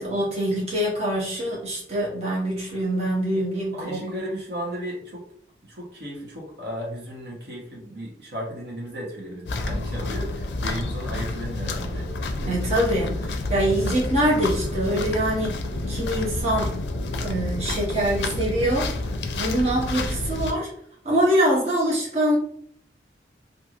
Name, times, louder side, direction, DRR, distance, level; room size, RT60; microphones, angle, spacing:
voice 1, 0.0-4.0 12.4-16.8 17.2-18.9 19.4-20.7 21.0-22.4, right 1 dB, 35° right, -5 dB, 0.8 m, -24 dB
voice 2, 3.7-5.3 5.6-12.1 13.7-13.9, equal, 65° right, -2 dB, 0.9 m, -34 dB
sound 1, 9.5-20.5, left 2 dB, 70° left, 0.4 m, -29 dB
3.0 x 2.5 x 2.4 m, 0.65 s
head